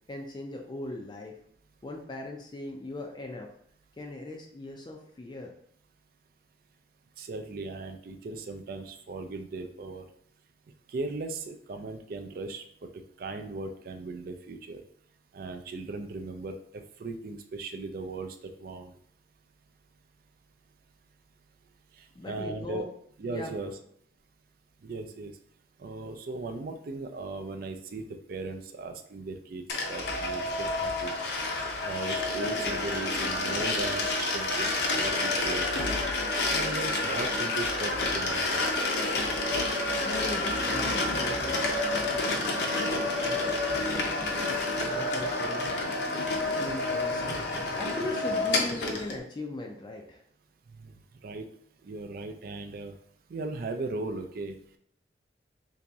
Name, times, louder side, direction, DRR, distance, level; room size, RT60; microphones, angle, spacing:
voice 1, 0.1-1.3 1.8-3.5 4.0-5.5 22.2-22.9 23.3-23.5 40.0-44.4 44.9-45.7 46.5-47.2 47.8-50.2, left 2 dB, 25° left, 1 dB, 0.4 m, -39 dB
voice 2, 7.2-10.0 10.9-12.6 13.2-14.8 15.3-18.9 22.0-22.9 23.2-23.8 24.8-25.3 25.8-28.0 28.3-31.1 31.8-35.8 36.5-38.8 50.7-51.0 51.2-51.5 51.8-52.9 53.3-54.6, right 3 dB, 55° right, 6 dB, 0.4 m, -38 dB
sound 1, 29.7-49.2, left 2 dB, 65° left, 0.6 m, -29 dB
2.9 x 2.8 x 3.4 m, 0.65 s
head